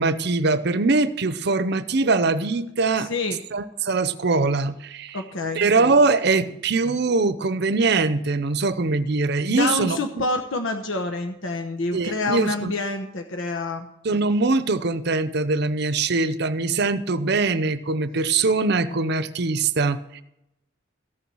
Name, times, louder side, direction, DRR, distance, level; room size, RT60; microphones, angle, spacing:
voice 1, 0.0-3.1 3.5-5.2 5.5-10.3 11.9-12.7 14.0-20.2, right 3 dB, 55° right, 13 dB, 0.7 m, -22 dB
voice 2, 3.0-3.4 5.1-5.7 9.5-13.9, left 2 dB, 80° left, 5 dB, 1.0 m, -27 dB
15.0 x 7.1 x 6.2 m, 0.85 s
head